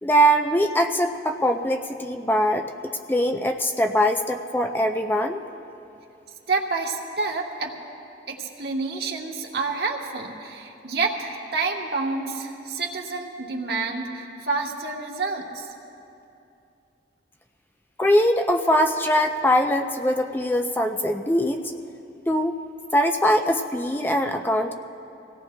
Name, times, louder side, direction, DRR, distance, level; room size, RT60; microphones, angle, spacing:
voice 1, 0.0-2.7 3.1-5.4 18.0-21.7 22.3-22.6 22.9-24.7, equal, 10° left, 4 dB, 0.4 m, -22 dB
voice 2, 6.5-7.7 8.3-15.7, right 4 dB, 60° right, 0 dB, 1.3 m, -28 dB
25.5 x 17.5 x 2.2 m, 2.7 s
head